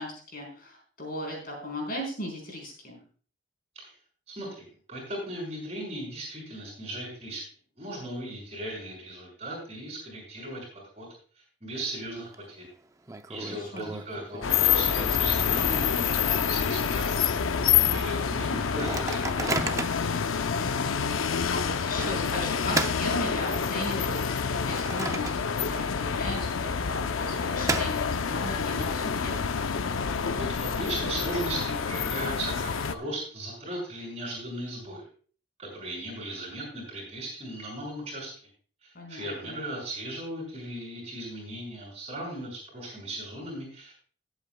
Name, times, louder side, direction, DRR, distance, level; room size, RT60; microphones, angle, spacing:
voice 1, 0.0-3.0 13.5-14.0 20.5-21.0 21.5-29.6 38.9-39.6, left 1 dB, 45° left, 0 dB, 4.2 m, -37 dB
voice 2, 4.3-7.4 7.8-11.1 11.6-12.7 13.3-17.4 17.9-19.8 30.3-35.1 35.6-38.3 38.8-43.9, right 1 dB, 30° right, -1 dB, 6.1 m, -37 dB
Microwave oven, 11.8-12.4 12.6-12.7 13.1-16.2 16.6-16.7 16.9-17.3 17.8-17.9 18.6-20.1 20.7-20.9 22.0-23.8 24.3-25.8 26.1-26.2 27.0-28.4, right 3 dB, 15° right, 0.5 m, -35 dB
sound 1, 14.4-33.0, left 6 dB, 85° left, 0.6 m, -27 dB
19.5 x 8.2 x 2.3 m, 0.43 s
head